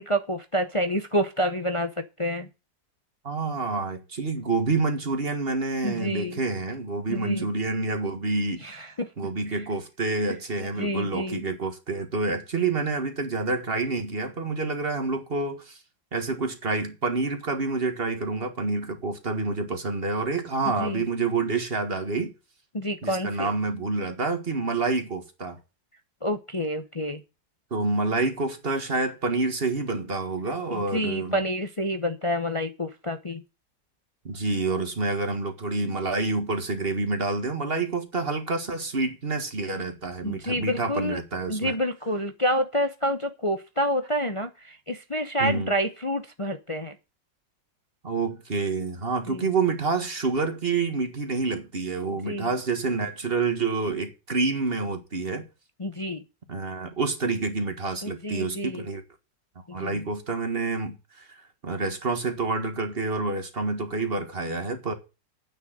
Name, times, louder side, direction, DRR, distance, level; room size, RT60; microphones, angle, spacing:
voice 1, 0.0-1.9 2.2-2.5 5.8-6.4 7.1-7.5 8.6-9.1 10.8-11.4 20.8-21.0 22.7-23.5 26.2-27.2 30.7-33.4 40.2-41.2 41.5-47.0 49.3-49.5 52.1-52.5 55.8-56.2 58.0-58.9 59.7-60.0, equal, 40° left, 0.4 m, -28 dB
voice 2, 3.2-8.6 9.2-15.8 16.1-22.3 23.0-25.6 27.7-31.4 34.3-41.8 45.4-45.7 48.0-55.4 56.5-59.0 59.7-61.4 61.6-64.9, right 3 dB, 35° right, 1.8 m, -28 dB
9.1 x 6.5 x 7.9 m
omnidirectional pair, 1.9 m